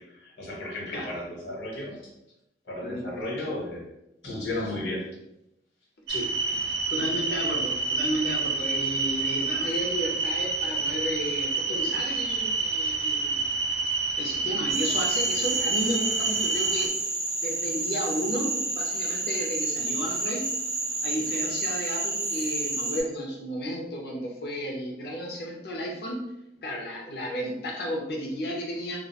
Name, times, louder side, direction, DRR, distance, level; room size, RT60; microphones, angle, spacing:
voice 1, 0.4-2.0 2.7-3.9 4.2-5.1 6.1-6.2 14.7-14.8, left 1 dB, 75° left, -4 dB, 0.9 m, -34 dB
voice 2, 6.1-13.4 14.2-16.9 17.4-20.5 21.0-26.2 26.6-29.0, equal, 55° left, -1 dB, 0.4 m, -33 dB
sound 1, 6.1-16.9, right 4 dB, 75° right, 0.4 m, -28 dB
Frog, 14.7-23.0, right 2 dB, 15° right, 0.4 m, -30 dB
2.2 x 2.1 x 2.7 m, 0.85 s
head